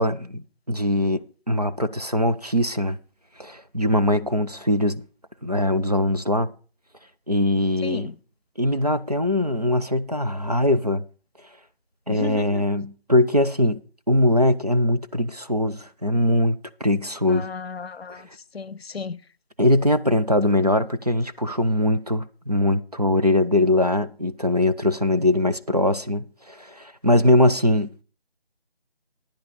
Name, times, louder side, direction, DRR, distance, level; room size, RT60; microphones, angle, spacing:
voice 1, 0.0-3.0 3.4-5.0 5.4-6.5 7.3-8.1 8.6-11.0 12.1-13.8 14.1-17.5 19.6-27.9, left 1 dB, 40° right, 0.5 m, -21 dB
voice 2, 12.1-12.6 17.4-18.2 18.5-19.2, left 5 dB, 75° left, 0.7 m, -33 dB
11.0 x 10.0 x 4.0 m
figure-of-eight pair, 175°, 31 cm